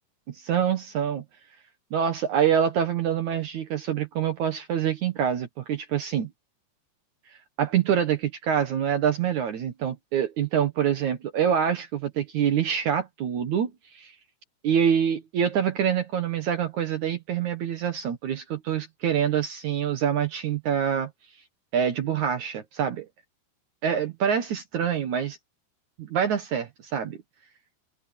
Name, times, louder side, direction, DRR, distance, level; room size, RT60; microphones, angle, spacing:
voice 1, 0.3-1.2 1.9-6.3 7.6-14.2 14.6-21.1 21.7-23.1 23.8-25.4 26.0-27.2, right 8 dB, 85° right, 1.6 m, -26 dB
open air
omnidirectional pair, 5.7 m